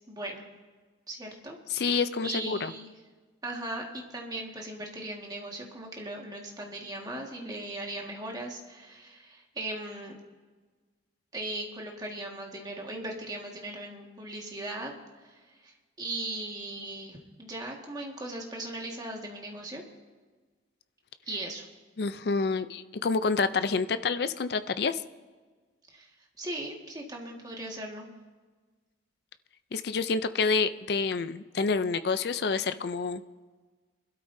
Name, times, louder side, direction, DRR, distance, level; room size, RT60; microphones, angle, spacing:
voice 1, 0.1-0.4 1.1-2.9 3.4-10.2 11.3-14.9 15.2-15.3 15.6-19.8 21.3-21.7 25.9-26.1 26.4-28.1, right 1 dB, 20° right, 0 dB, 1.7 m, -38 dB
voice 2, 1.7-2.7 22.0-25.0 29.7-33.2, left 4 dB, 55° left, 12 dB, 0.4 m, -28 dB
23.0 x 12.5 x 2.7 m, 1.4 s
head